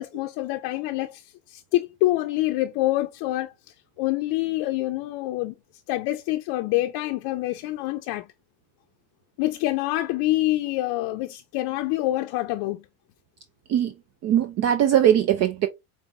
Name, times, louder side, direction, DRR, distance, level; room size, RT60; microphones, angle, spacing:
voice 1, 0.0-5.5 5.9-8.3 9.4-12.8, left 17 dB, 55° left, 0.6 m, -26 dB
voice 2, 14.2-15.7, right 10 dB, 40° right, 0.4 m, -20 dB
5.1 x 2.2 x 2.6 m
supercardioid pair, 100°, 45 cm